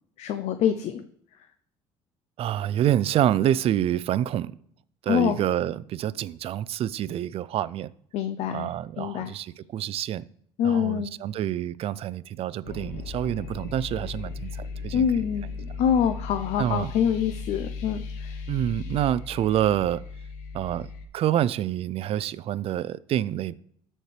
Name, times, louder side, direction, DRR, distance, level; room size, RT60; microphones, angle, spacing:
voice 1, 0.2-1.0 5.1-5.4 8.1-8.7 9.0-9.3 10.6-11.1 14.9-15.5 15.8-18.3, left 8 dB, 65° left, 0.5 m, -25 dB
voice 2, 2.4-4.5 5.0-7.9 8.5-10.2 10.6-15.1 16.6-16.9 18.5-20.0 20.5-23.6, right 11 dB, 55° right, 0.4 m, -27 dB
sound 1, 12.7-21.1, left 4 dB, 85° left, 0.9 m, -37 dB
13.0 x 4.4 x 3.2 m
supercardioid pair, 95°, 12 cm